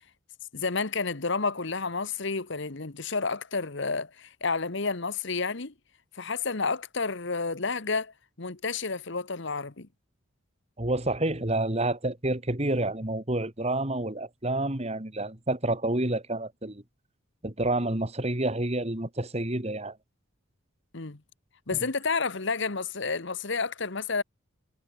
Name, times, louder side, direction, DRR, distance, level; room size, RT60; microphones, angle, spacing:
voice 1, 0.5-5.7 6.1-9.9 20.9-21.2 21.7-24.2, left 4 dB, 60° left, 1.3 m, -30 dB
voice 2, 10.8-16.8 17.4-20.0 21.7-21.8, right 2 dB, 30° right, 2.2 m, -29 dB
head